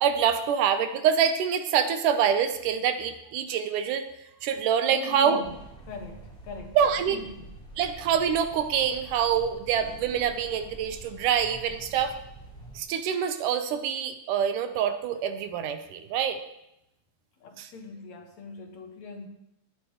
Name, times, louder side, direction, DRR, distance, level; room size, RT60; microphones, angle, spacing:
voice 1, 0.0-4.1 4.4-5.4 6.8-7.2 7.8-12.2 12.8-16.4 17.6-17.7, right 8 dB, 85° right, 8 dB, 2.4 m, -25 dB
voice 2, 4.9-5.6 5.9-7.5 17.4-19.3, left 4 dB, 65° left, 2 dB, 2.7 m, -41 dB
sound 1, 5.4-12.8, right 2 dB, 10° left, 3.5 m, -46 dB
18.5 x 10.0 x 3.1 m, 0.84 s
omnidirectional pair, 3.7 m